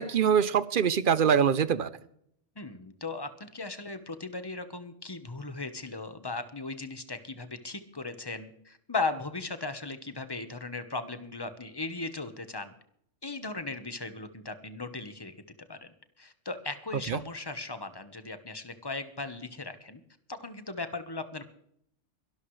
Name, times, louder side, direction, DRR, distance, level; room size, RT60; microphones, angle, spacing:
voice 1, 0.0-1.9 17.1-17.2, right 7 dB, 50° right, 15 dB, 0.7 m, -24 dB
voice 2, 2.6-12.7 13.2-15.3 15.7-15.9 16.2-20.0 20.3-21.4, left 3 dB, 20° left, 9 dB, 1.1 m, -37 dB
23.0 x 12.0 x 3.2 m, 0.70 s
omnidirectional pair, 1.3 m